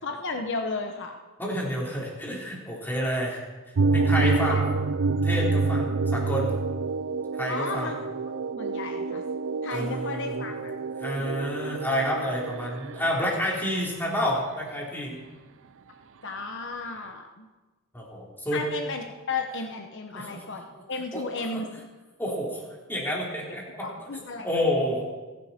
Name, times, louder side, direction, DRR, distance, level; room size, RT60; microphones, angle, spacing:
voice 1, 0.0-1.2 3.0-3.2 4.3-4.6 7.5-8.0 8.6-9.2 9.6-10.7 16.2-17.5 18.5-21.7 23.5-24.5, left 3 dB, 55° left, 4 dB, 1.1 m, -34 dB
voice 2, 1.4-3.4 3.9-4.6 5.2-6.5 7.4-7.9 9.7-10.5 11.0-15.2 17.9-18.6 20.1-20.4 21.1-21.2 21.5-21.6 22.2-22.6 22.9-23.9 24.4-25.0, equal, 10° left, -4 dB, 4.0 m, -29 dB
sound 1, 3.8-13.2, right 4 dB, 65° right, 0.6 m, -27 dB
29.5 x 11.0 x 4.4 m, 1.2 s
head